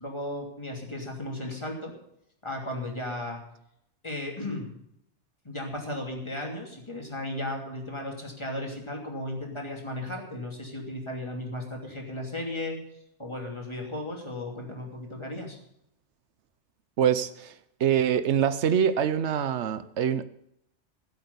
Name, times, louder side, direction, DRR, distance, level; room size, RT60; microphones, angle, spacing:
voice 1, 0.0-1.9 2.4-3.4 4.0-4.7 5.4-12.8 13.2-15.6, left 1 dB, 25° left, 0 dB, 2.9 m, -35 dB
voice 2, 17.0-17.5 17.8-20.2, right 8 dB, 80° right, 14 dB, 1.0 m, -24 dB
15.5 x 8.1 x 6.9 m, 0.76 s
omnidirectional pair, 1.1 m